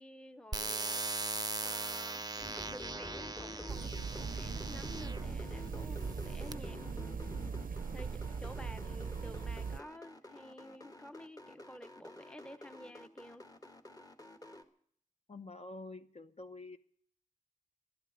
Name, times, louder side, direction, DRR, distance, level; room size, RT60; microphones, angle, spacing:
voice 1, 0.0-7.5 7.9-13.5, left 1 dB, 5° left, 10 dB, 0.8 m, -52 dB
sound 1, 0.5-5.3 6.0-6.5, right 3 dB, 30° right, 0.6 m, -40 dB
sound 2, 2.4-14.6, left 1 dB, 25° left, 1.4 m, -49 dB
sound 3, 3.7-9.8, right 5 dB, 90° right, 0.6 m, -40 dB
voice 2, 15.3-16.8, left 2 dB, 50° left, 8 dB, 0.9 m, -47 dB
12.5 x 11.5 x 9.2 m, 0.62 s
wide cardioid pair, 80°, 14 cm